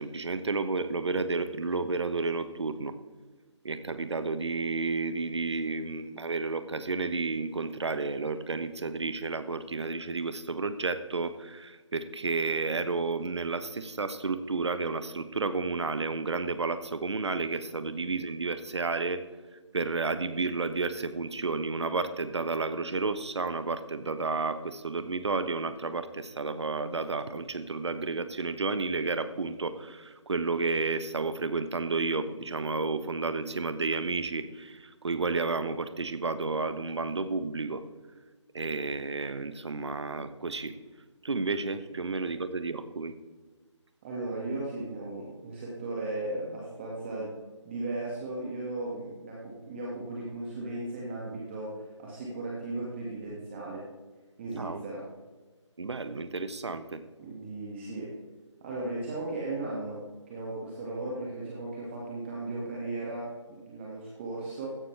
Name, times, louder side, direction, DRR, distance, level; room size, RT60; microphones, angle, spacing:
voice 1, 0.0-2.9 3.6-19.2 19.7-37.8 38.5-40.7 41.2-43.1 54.5-54.8 55.8-57.0, right 3 dB, 60° right, 11 dB, 1.2 m, -31 dB
voice 2, 44.0-47.3 47.6-53.8 54.4-55.0 57.2-58.1 58.6-64.8, right 2 dB, 20° right, -4 dB, 2.0 m, -36 dB
15.5 x 11.5 x 3.4 m, 1.3 s
figure-of-eight pair, 155°, 16 cm